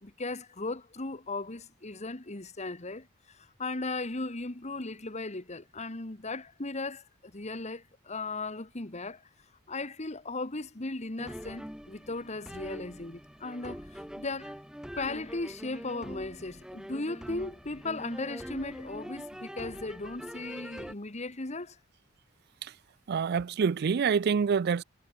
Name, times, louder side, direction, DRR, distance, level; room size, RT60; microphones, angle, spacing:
voice 1, 0.0-9.2 9.7-14.5 15.0-21.8, left 3 dB, 35° left, 1.7 m, -37 dB
sound 1, 11.2-20.9, equal, 5° right, 3.2 m, -44 dB
voice 2, 23.1-24.8, right 6 dB, 50° right, 0.4 m, -26 dB
head